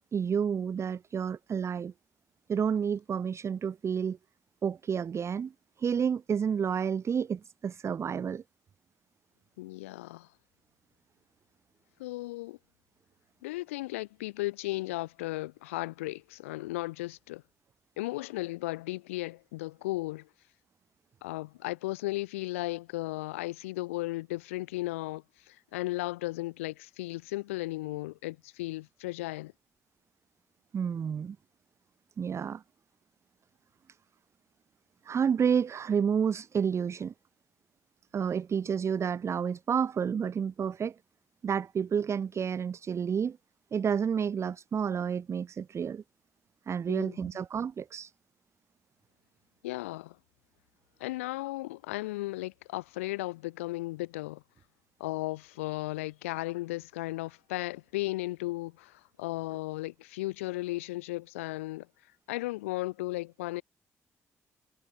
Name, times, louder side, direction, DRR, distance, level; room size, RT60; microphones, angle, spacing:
voice 1, 0.0-1.9 2.5-4.2 4.6-5.5 5.8-8.4 30.7-31.4 32.2-32.6 35.0-37.1 38.1-41.0 41.4-43.4 43.7-46.0 46.7-48.1, right 7 dB, 40° right, 0.4 m, -30 dB
voice 2, 9.6-10.3 12.0-12.6 13.4-17.4 18.0-20.3 21.2-29.5 46.9-47.3 49.6-50.2 51.0-54.4 55.0-61.9 62.3-63.6, left 19 dB, 85° left, 0.4 m, -35 dB
hypercardioid pair, 40°, 7 cm